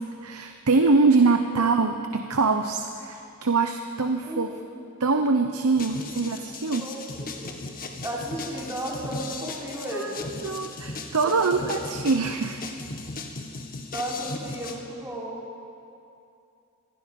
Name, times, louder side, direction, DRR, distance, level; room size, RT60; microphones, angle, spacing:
voice 1, 0.2-4.5 5.0-6.9 9.9-10.2 10.4-12.6, right 4 dB, 80° right, 6 dB, 1.0 m, -23 dB
sound 1, 5.8-14.8, left 3 dB, 40° left, 1.9 m, -37 dB
voice 2, 8.0-10.4 11.2-11.9 13.9-15.4, right 1 dB, 15° right, -4 dB, 3.6 m, -34 dB
26.0 x 20.5 x 5.4 m, 2.6 s
head